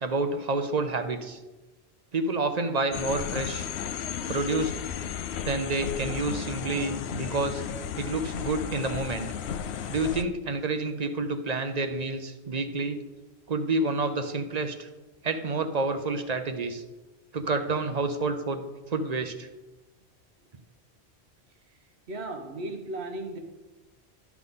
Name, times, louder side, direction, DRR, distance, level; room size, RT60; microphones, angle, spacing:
voice 1, 0.0-1.4 2.1-3.7 4.3-4.7 5.4-7.6 8.0-9.3 9.9-13.0 13.5-14.9 15.2-16.8 17.3-18.6 18.9-19.5, right 3 dB, 45° right, 8 dB, 0.7 m, -29 dB
sound 1, 2.9-10.2, left 8 dB, 80° left, 0.8 m, -34 dB
voice 2, 22.1-23.4, right 2 dB, 80° right, 5 dB, 1.4 m, -35 dB
12.0 x 5.9 x 3.7 m, 1.1 s
omnidirectional pair, 1.1 m